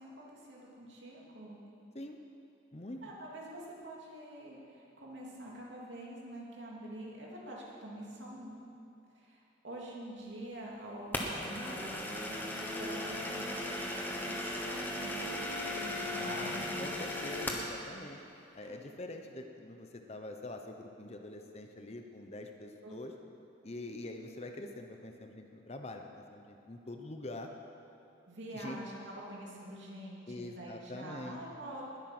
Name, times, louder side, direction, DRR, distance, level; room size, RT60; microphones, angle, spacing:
voice 1, 0.0-1.6 3.0-8.5 9.2-12.4 12.8-17.0 18.6-18.7 22.8-22.9 28.3-31.9, right 1 dB, 65° right, -4 dB, 3.0 m, -46 dB
voice 2, 2.7-3.0 16.1-18.2 18.5-23.1 23.6-27.5 28.5-28.8 30.3-31.4, left 1 dB, 30° left, 4 dB, 0.9 m, -44 dB
sound 1, 11.1-17.7, left 1 dB, 10° left, 1.2 m, -37 dB
20.0 x 8.7 x 6.1 m, 3.0 s
head